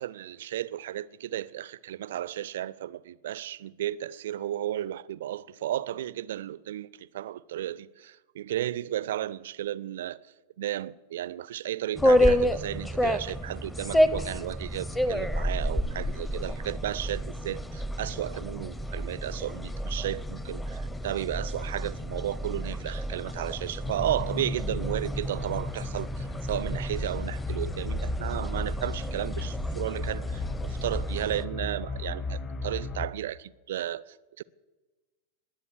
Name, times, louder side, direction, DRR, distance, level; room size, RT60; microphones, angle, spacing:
voice 1, 0.0-10.2 10.6-34.4, right 12 dB, 60° right, 0.5 m, -34 dB
sound 1, 11.9-31.4, equal, 10° left, 0.9 m, -30 dB
sound 2, 23.8-33.1, left 2 dB, 25° left, 1.5 m, -35 dB
20.0 x 8.3 x 8.0 m
figure-of-eight pair, 90°, 0 cm